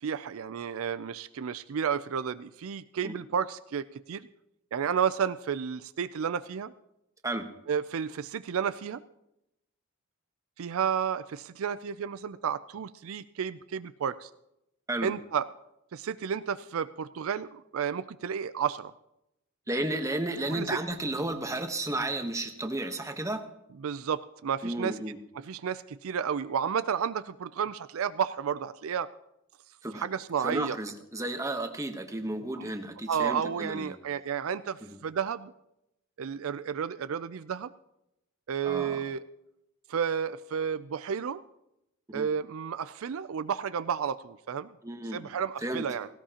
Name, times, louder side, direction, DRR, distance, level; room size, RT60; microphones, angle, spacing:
voice 1, 0.0-4.3 4.7-6.7 7.7-9.0 10.6-14.3 15.0-15.5 15.9-18.9 20.5-20.8 23.8-24.9 25.4-29.1 30.0-30.8 32.6-32.7 33.1-35.5 36.2-37.7 38.5-39.2 39.9-41.4 42.1-44.7 45.1-46.1, right 7 dB, 70° right, 13 dB, 0.4 m, -32 dB
voice 2, 19.7-23.4 24.6-25.2 29.8-30.1 30.4-34.0 34.8-35.0 38.6-39.0 42.1-42.3 44.8-45.3 45.6-45.9, right 1 dB, 15° right, 6 dB, 1.1 m, -33 dB
17.5 x 16.5 x 2.9 m, 0.84 s
head